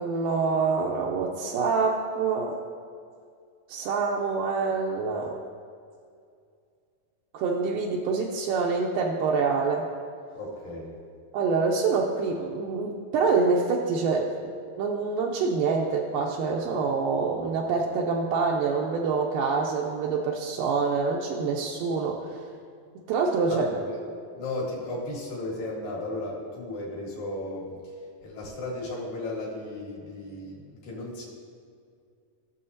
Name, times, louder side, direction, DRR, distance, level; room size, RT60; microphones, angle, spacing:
voice 1, 0.0-2.6 3.7-5.4 7.3-9.9 11.3-14.3 14.8-22.4 23.1-23.7, right 4 dB, 80° right, -1 dB, 2.1 m, -26 dB
voice 2, 10.3-11.0 23.5-24.0 24.3-27.9 28.2-31.2, left 2 dB, 65° left, -4 dB, 3.2 m, -35 dB
16.0 x 6.9 x 2.7 m, 2.3 s
omnidirectional pair, 4.2 m